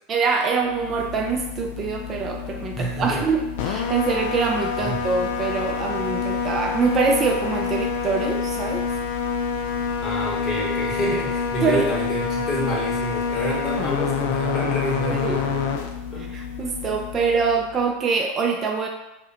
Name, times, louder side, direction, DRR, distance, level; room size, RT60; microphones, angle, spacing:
voice 1, 0.1-8.8 11.6-11.9 15.1-15.4 16.2-18.9, right 5 dB, 35° right, 2 dB, 0.3 m, -24 dB
sound 1, 0.7-17.9, left 6 dB, 65° left, 0.3 m, -27 dB
voice 2, 2.8-3.2 4.8-5.0 10.0-15.8 16.1-16.3, equal, 30° left, -4 dB, 1.2 m, -28 dB
3.3 x 2.1 x 2.8 m, 0.95 s
hypercardioid pair, 95°, 0 cm